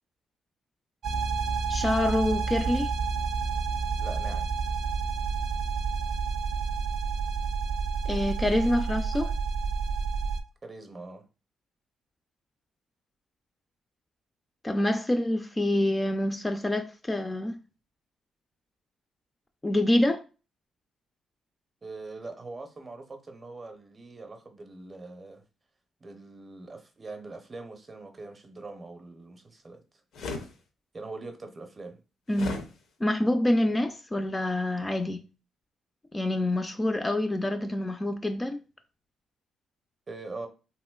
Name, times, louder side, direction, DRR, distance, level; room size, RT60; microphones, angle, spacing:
sound 1, 1.0-10.4, right 5 dB, 70° right, 0.4 m, -29 dB
voice 1, 1.7-2.9 8.1-9.3 14.6-17.6 19.6-20.2 32.3-32.6 33.0-35.2 36.1-38.6, left 1 dB, 15° left, 0.3 m, -26 dB
voice 2, 4.0-4.5 10.6-11.3 21.8-25.4 26.0-29.8 30.9-32.0 40.1-40.5, right 3 dB, 30° right, 0.6 m, -42 dB
sound 2, 30.1-30.5 32.3-32.7, left 3 dB, 75° left, 0.5 m, -34 dB
3.0 x 2.9 x 2.2 m
cardioid pair, 90°, 0 cm